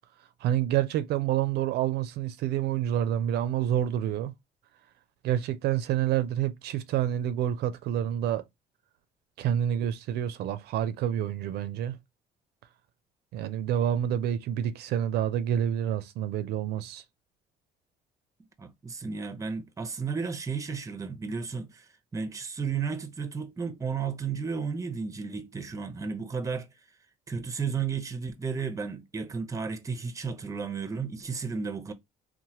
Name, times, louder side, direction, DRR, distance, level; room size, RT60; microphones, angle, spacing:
voice 1, 0.4-4.3 5.2-8.4 9.4-12.0 13.3-17.0, right 11 dB, 75° right, 0.4 m, -28 dB
voice 2, 18.6-21.9 22.1-26.7 27.3-31.9, right 5 dB, 20° right, 0.5 m, -33 dB
3.0 x 2.1 x 2.8 m
cardioid pair, 110°, 17 cm